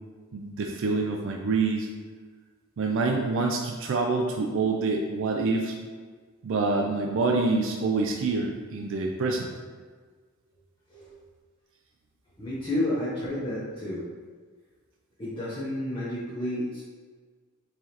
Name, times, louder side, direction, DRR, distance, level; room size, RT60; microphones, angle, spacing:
voice 1, 0.3-1.9 2.8-5.7 6.4-9.5, right 3 dB, 60° right, 1 dB, 0.4 m, -26 dB
voice 2, 12.4-14.0 15.2-16.8, left 1 dB, 25° left, -9 dB, 0.7 m, -31 dB
4.6 x 3.2 x 2.8 m, 1.5 s
head